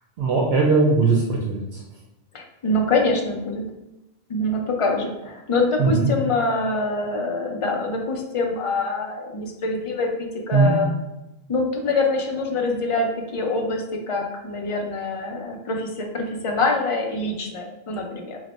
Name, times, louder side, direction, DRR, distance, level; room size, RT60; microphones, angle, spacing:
voice 1, 0.2-1.8 5.8-6.1 10.5-10.8, right 4 dB, 80° right, -2 dB, 0.9 m, -19 dB
voice 2, 2.3-3.6 4.3-10.9 11.5-18.4, left 2 dB, 45° left, 1 dB, 0.4 m, -25 dB
3.0 x 2.1 x 4.0 m, 0.93 s
omnidirectional pair, 1.0 m